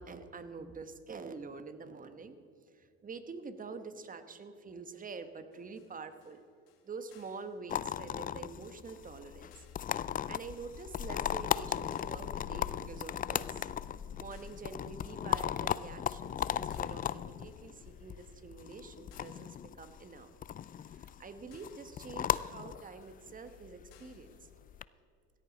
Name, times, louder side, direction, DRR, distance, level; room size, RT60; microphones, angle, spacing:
voice 1, 0.0-2.4 2.7-6.4 6.8-9.6 10.3-13.7 14.2-20.3 20.9-24.5, right 4 dB, 25° right, 10 dB, 1.3 m, -46 dB
sound 1, 5.5-24.4, left 9 dB, 90° left, 1.5 m, -67 dB
sound 2, 7.7-24.8, left 9 dB, 30° left, 0.4 m, -37 dB
16.5 x 14.0 x 4.1 m, 2.5 s
supercardioid pair, 85°, 30 cm